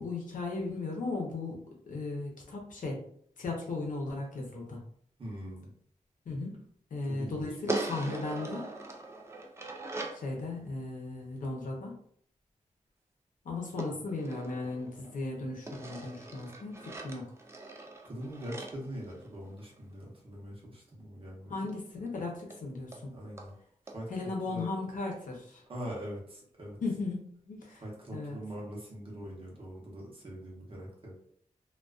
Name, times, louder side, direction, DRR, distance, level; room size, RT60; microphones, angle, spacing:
voice 1, 0.0-3.0 3.4-4.8 6.3-6.6 6.9-8.7 10.1-11.9 13.4-17.3 21.5-23.1 24.1-25.6 26.8-27.8 28.1-28.4, left 3 dB, 80° left, -1 dB, 0.6 m, -36 dB
voice 2, 5.2-5.7 7.0-7.5 18.0-21.5 23.1-23.5 23.9-24.1 24.5-24.7 25.7-26.8 27.8-31.1, equal, 45° right, -3 dB, 0.8 m, -42 dB
sound 1, 7.7-10.3 13.8-15.2 15.7-19.8 21.7-21.8 22.1-22.2 22.5-22.6 22.9-23.0 23.4-23.5 23.9-24.0, right 2 dB, 20° right, 0.3 m, -40 dB
2.3 x 2.2 x 2.3 m, 0.63 s
wide cardioid pair, 135°, 13 cm